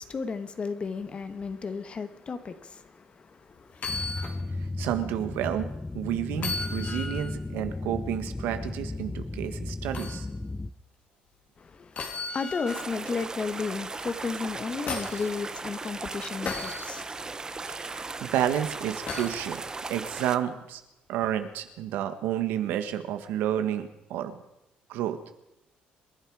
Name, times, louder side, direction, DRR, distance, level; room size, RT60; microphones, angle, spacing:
voice 1, 0.0-3.9 11.6-17.7, left 5 dB, 35° left, 1.4 m, -34 dB
sound 1, 3.7-4.4 4.8-4.9 6.3-7.4 9.9-10.2 11.9-12.9 14.4-15.3 16.4-16.9 19.1-19.4 21.2-21.3, left 4 dB, 50° left, 2.9 m, -35 dB
sound 2, 3.9-10.7, left 2 dB, 15° left, 0.6 m, -35 dB
voice 2, 4.6-5.7 5.9-10.3 17.7-19.6 19.9-20.8 21.1-24.4 24.9-25.2, right 11 dB, 85° right, 1.5 m, -30 dB
sound 3, 12.7-20.4, right 3 dB, 20° right, 0.8 m, -37 dB
27.0 x 11.0 x 4.8 m
cardioid pair, 105°, 3 cm